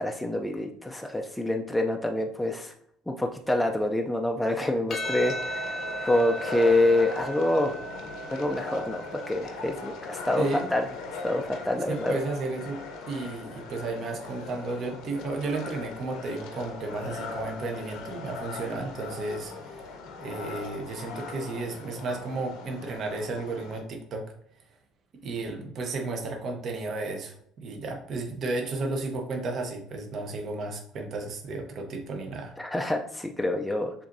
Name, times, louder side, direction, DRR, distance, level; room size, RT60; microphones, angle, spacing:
voice 1, 0.0-2.7 3.1-7.8 8.2-10.9 11.2-12.2 32.6-34.1, left 1 dB, 5° left, 2 dB, 0.4 m, -27 dB
Percussion, 4.9-9.5, right 1 dB, 35° left, 0.7 m, -36 dB
sound 1, 5.0-23.8, left 3 dB, 70° left, 0.8 m, -40 dB
voice 2, 10.4-10.7 11.9-12.8 13.1-19.9 20.2-24.3 25.2-27.3 27.6-32.5, right 3 dB, 45° right, 2 dB, 0.8 m, -33 dB
6.9 x 2.6 x 2.6 m, 0.68 s
cardioid pair, 110°, 0 cm